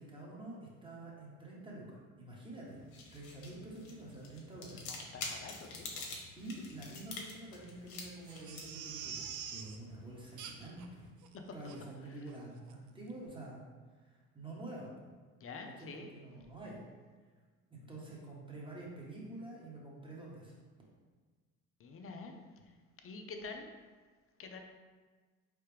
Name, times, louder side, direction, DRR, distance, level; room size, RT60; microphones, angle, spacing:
voice 1, 0.0-2.8 3.1-4.8 6.3-11.0 11.5-13.6 14.0-15.1 15.8-16.8 17.7-20.5, right 2 dB, 10° right, -4 dB, 1.4 m, -48 dB
sound 1, 2.6-11.1, left 3 dB, 60° left, 1.0 m, -48 dB
voice 2, 4.9-6.1 11.3-11.5 12.1-12.3 15.4-16.1 21.8-22.4 22.6-22.7 23.0-23.7 24.4-24.6, left 4 dB, 35° left, 4 dB, 0.6 m, -47 dB
Crying sobbing, 8.3-9.8 10.4-10.8 11.2-11.3 11.7-11.8 12.3-12.4 12.7-12.8, right 8 dB, 50° right, 0.6 m, -45 dB
4.3 x 3.4 x 3.4 m, 1.4 s
hypercardioid pair, 70°, 39 cm